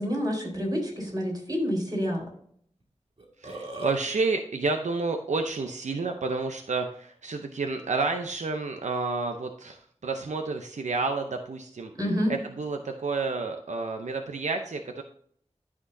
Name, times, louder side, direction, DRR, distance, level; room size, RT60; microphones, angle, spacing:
voice 1, 0.0-2.3 12.0-12.3, equal, 35° right, -1 dB, 4.0 m, -28 dB
Burping eructation, 2.8-2.9 3.2-4.0, right 2 dB, 50° right, 2.0 m, -37 dB
voice 2, 3.4-11.9 12.3-15.0, right 3 dB, 85° right, 4 dB, 0.7 m, -30 dB
12.5 x 6.0 x 2.7 m, 0.63 s
wide cardioid pair, 60°, 12 cm